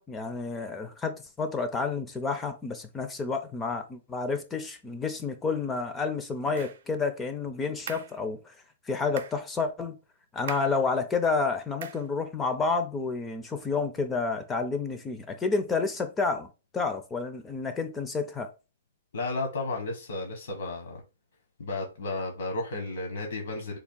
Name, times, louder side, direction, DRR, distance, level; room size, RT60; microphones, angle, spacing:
voice 1, 0.0-8.5 8.9-9.9 10.3-16.5 16.7-18.5, left 4 dB, 10° left, 0.4 m, -30 dB
sound 1, 6.6-6.8 7.9-8.2 9.2-9.4 10.5-10.8 11.8-12.1, right 7 dB, 65° right, 0.6 m, -40 dB
voice 2, 19.1-21.0 21.6-23.8, left 2 dB, 80° left, 1.1 m, -33 dB
3.4 x 2.3 x 3.7 m
hypercardioid pair, 160°, 0 cm